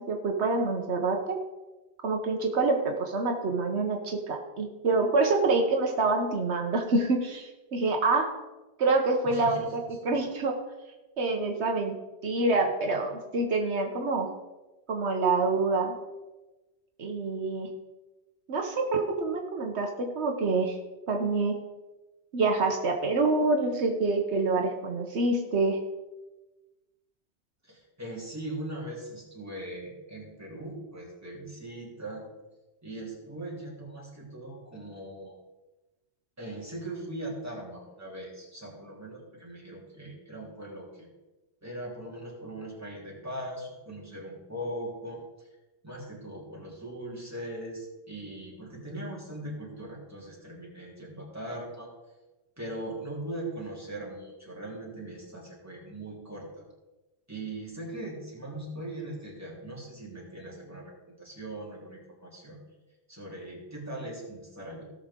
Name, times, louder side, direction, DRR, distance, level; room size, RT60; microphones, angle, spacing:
voice 1, 0.1-1.4 2.0-8.3 8.8-10.5 11.2-12.0 12.2-14.3 14.9-15.9 17.0-17.7 18.5-20.8 21.1-21.5 22.3-25.8, right 3 dB, 80° right, 3 dB, 1.3 m, -26 dB
voice 2, 9.2-9.9 27.6-32.2 32.8-35.3 36.4-41.1 41.6-45.2 45.8-51.9 52.6-56.6 57.3-62.6 63.1-64.8, right 1 dB, 15° right, -4 dB, 3.1 m, -40 dB
17.0 x 6.4 x 3.7 m, 1.1 s
omnidirectional pair, 1.1 m